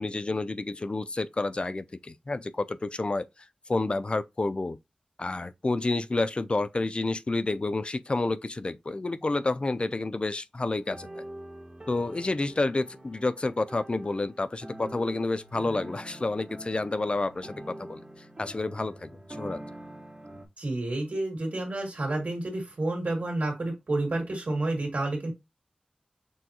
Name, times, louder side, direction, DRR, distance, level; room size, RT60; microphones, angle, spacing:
voice 1, 0.0-3.3 3.7-4.8 5.2-11.2 11.9-18.0 18.4-19.1 19.4-19.6, left 2 dB, 40° left, 0.3 m, -29 dB
sound 1, 10.7-20.5, right 1 dB, 30° right, 1.0 m, -44 dB
voice 2, 20.6-25.3, right 2 dB, 75° right, 2.1 m, -30 dB
6.2 x 2.3 x 2.8 m
wide cardioid pair, 60°, 3 cm